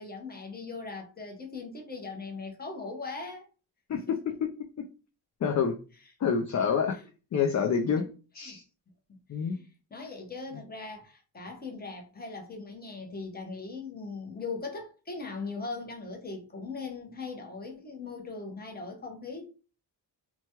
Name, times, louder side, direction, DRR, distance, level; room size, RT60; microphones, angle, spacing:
voice 1, 0.0-3.4 4.1-4.3 6.7-7.1 8.0-8.1 8.4-8.6 9.4-19.5, left 4 dB, 20° left, 0.9 m, -40 dB
voice 2, 5.4-5.8 6.2-7.0 7.3-8.0 8.3-8.6 9.3-9.6, left 6 dB, 45° left, 0.5 m, -27 dB
3.0 x 2.3 x 2.8 m
cardioid pair, 95°, 43 cm